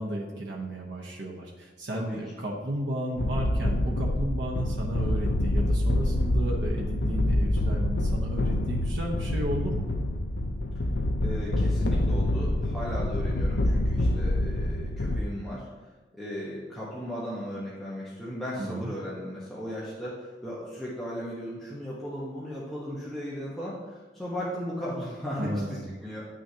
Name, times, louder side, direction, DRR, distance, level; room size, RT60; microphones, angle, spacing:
voice 1, 0.0-9.9 18.5-18.9 25.4-25.9, right 1 dB, 85° right, -1 dB, 1.0 m, -33 dB
sound 1, 3.2-15.2, left 1 dB, 75° left, 0.6 m, -26 dB
voice 2, 11.2-15.7 16.1-26.3, equal, ahead, -9 dB, 1.1 m, -36 dB
9.8 x 6.3 x 2.8 m, 1.3 s
head